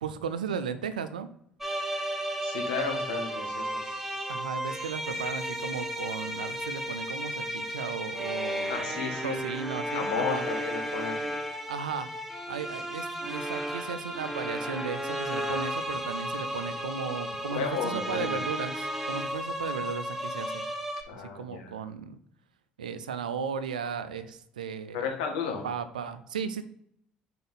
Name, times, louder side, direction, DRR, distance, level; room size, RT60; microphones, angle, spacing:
voice 1, 0.0-1.3 4.3-10.4 11.7-12.1 12.5-20.6 21.2-22.2 22.8-25.1 25.6-26.6, right 6 dB, 85° right, 12 dB, 0.4 m, -35 dB
sound 1, 1.6-21.0, equal, 5° right, 1.2 m, -34 dB
voice 2, 2.4-4.0 8.7-9.4 9.9-11.2 17.5-18.4 21.1-21.8 24.9-25.6, left 6 dB, 75° left, 2 dB, 1.3 m, -33 dB
5.2 x 4.6 x 3.9 m, 0.71 s
hypercardioid pair, 55°, 4 cm